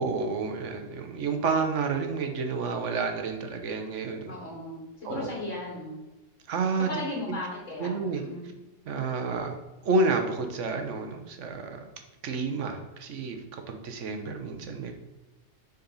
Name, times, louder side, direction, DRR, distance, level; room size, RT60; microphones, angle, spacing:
voice 1, 0.0-4.3 5.0-5.3 6.5-6.9 7.8-8.2 8.9-9.5 9.8-11.8 12.2-14.9, right 4 dB, 75° right, 5 dB, 1.2 m, -30 dB
voice 2, 4.3-5.9 6.9-8.5, left 2 dB, 70° left, -4 dB, 2.2 m, -36 dB
6.7 x 4.1 x 4.0 m, 1.1 s
omnidirectional pair, 1.3 m